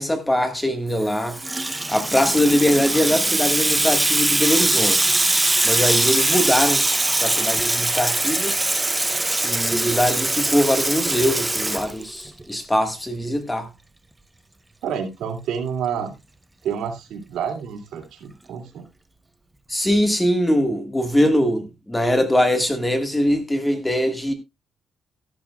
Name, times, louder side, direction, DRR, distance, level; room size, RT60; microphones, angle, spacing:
voice 1, 0.0-1.4 1.9-5.1 5.6-6.8 7.2-8.6 9.4-13.7 19.7-24.3, equal, 10° left, 1.6 m, -22 dB
Water tap faucet / Sink (filling or washing), 1.0-12.4, right 2 dB, 10° right, 0.6 m, -22 dB
voice 2, 14.8-16.1 16.6-18.9, right 7 dB, 90° right, 2.6 m, -29 dB
13.0 x 12.0 x 2.3 m
cardioid pair, 150°, 0 cm